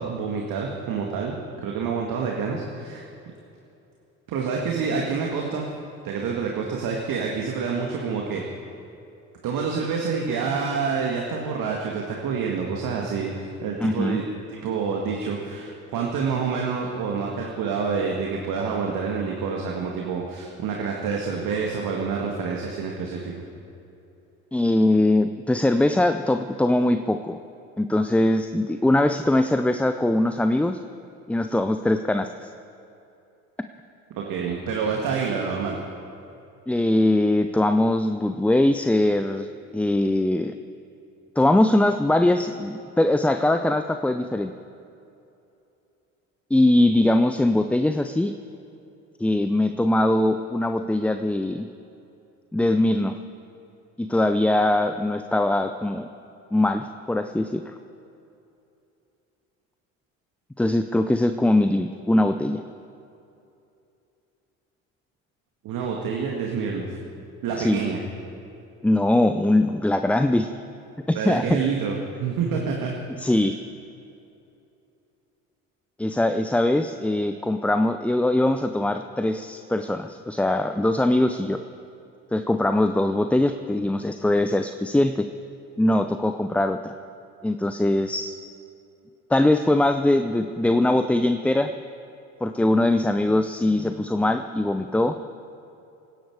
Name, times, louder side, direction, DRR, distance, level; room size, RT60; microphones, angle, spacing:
voice 1, 0.0-1.4 1.6-3.0 4.3-5.7 6.0-8.4 9.4-14.3 14.6-23.5 34.2-35.8 65.6-67.0 67.4-68.0 71.2-72.0 72.2-72.9 73.2-73.3, right 5 dB, 55° right, 0 dB, 2.0 m, -27 dB
voice 2, 13.8-14.2 24.5-27.4 27.8-30.8 31.3-32.5 36.7-39.5 39.7-40.5 41.4-44.5 46.5-48.3 49.2-51.7 52.5-53.2 54.0-56.1 56.5-57.7 60.6-62.6 67.6-67.8 68.8-70.5 71.1-71.4 73.2-73.6 76.0-81.6 82.3-85.3 85.8-86.9 87.4-88.4 89.3-91.7 92.4-95.2, left 1 dB, 5° left, 8 dB, 0.5 m, -21 dB
25.0 x 10.0 x 4.8 m, 2.8 s
hypercardioid pair, 65°, 41 cm